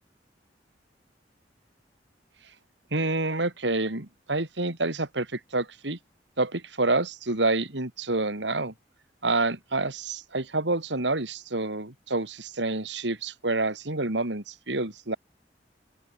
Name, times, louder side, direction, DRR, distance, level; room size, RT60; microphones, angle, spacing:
voice 1, 2.9-6.0 6.4-8.7 9.2-15.2, right 2 dB, 85° right, 3.3 m, -28 dB
open air
head